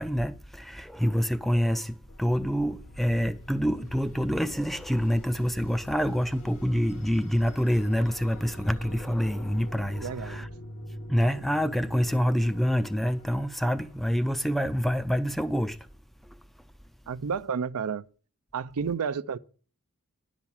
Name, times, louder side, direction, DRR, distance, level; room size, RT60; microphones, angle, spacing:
voice 1, 0.0-10.5 11.1-15.9, equal, ahead, 0.4 m, -27 dB
sound 1, 2.0-10.6, left 1 dB, 40° left, 0.8 m, -48 dB
sound 2, 2.1-2.7 3.2-13.8, left 1 dB, 75° left, 1.7 m, -46 dB
voice 2, 10.0-10.5 17.1-18.1 18.5-19.4, right 6 dB, 85° right, 0.5 m, -31 dB
11.0 x 6.0 x 7.0 m
head